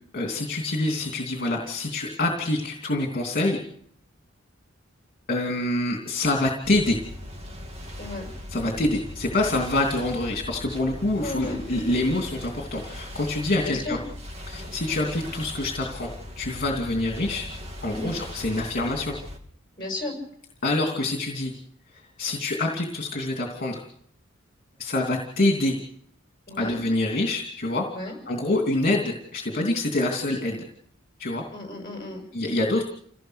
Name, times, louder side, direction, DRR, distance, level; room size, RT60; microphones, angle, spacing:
voice 1, 0.1-3.6 5.3-7.0 8.5-14.0 14.5-17.5 17.8-19.2 20.6-21.5 21.9-23.8 24.8-25.8 26.6-27.8 28.3-30.7 31.2-31.4 32.3-32.8, left 2 dB, 45° left, 1 dB, 2.9 m, -26 dB
sound 1, 6.6-19.4, left 1 dB, 30° right, 2.7 m, -39 dB
voice 2, 8.0-8.3 11.2-11.6 13.6-14.0 17.8-18.2 19.8-20.1 26.5-26.8 27.9-28.1 31.5-32.2, left 2 dB, 25° left, 1 dB, 6.3 m, -34 dB
27.5 x 17.5 x 6.6 m, 0.68 s
head